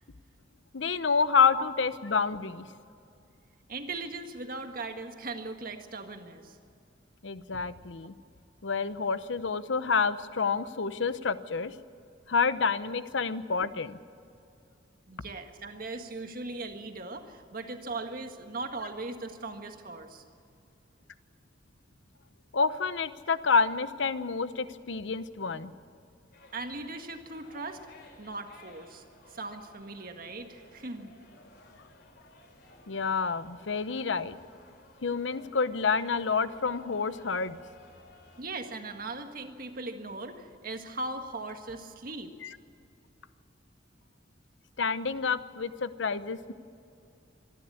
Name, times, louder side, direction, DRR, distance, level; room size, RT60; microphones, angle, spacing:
voice 1, 0.7-2.7 7.2-8.1 8.6-11.7 12.3-14.0 22.5-25.7 32.9-34.4 35.0-37.6 42.4-42.5 44.8-46.5, left 5 dB, 75° left, 13 dB, 0.8 m, -28 dB
voice 2, 3.7-6.6 15.1-20.2 26.5-27.8 28.2-29.0 29.3-31.1 38.4-42.3, right 3 dB, 50° right, 6 dB, 1.7 m, -39 dB
sound 1, 26.3-38.4, left 2 dB, 60° left, 3.2 m, -56 dB
25.0 x 11.5 x 9.6 m, 2.5 s
head